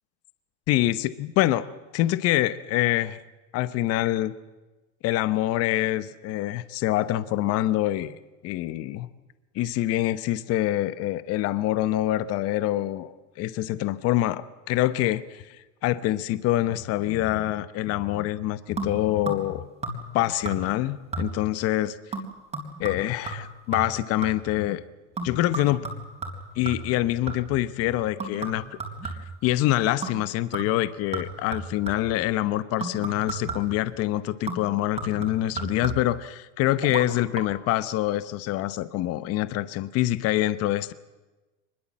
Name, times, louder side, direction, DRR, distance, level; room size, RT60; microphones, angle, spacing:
voice 1, 0.7-1.7 1.9-3.2 3.5-4.3 5.0-8.2 8.4-9.1 9.5-13.1 13.4-15.6 15.8-19.6 20.1-22.0 22.8-24.8 25.2-25.8 26.6-28.6 29.0-29.2 29.4-40.9, left 15 dB, 40° left, 14 dB, 1.0 m, -25 dB
sound 1, 18.8-19.6 19.8-20.2 20.4-20.8 21.1-21.6 22.1-24.5 25.2-27.6 28.2-29.5 30.0-30.3 30.5-32.2 32.8-33.8 34.5-36.2 36.8-37.0 37.3-37.4, right 3 dB, 20° right, 3.9 m, -35 dB
23.5 x 21.5 x 7.4 m, 1.1 s
supercardioid pair, 135°, 36 cm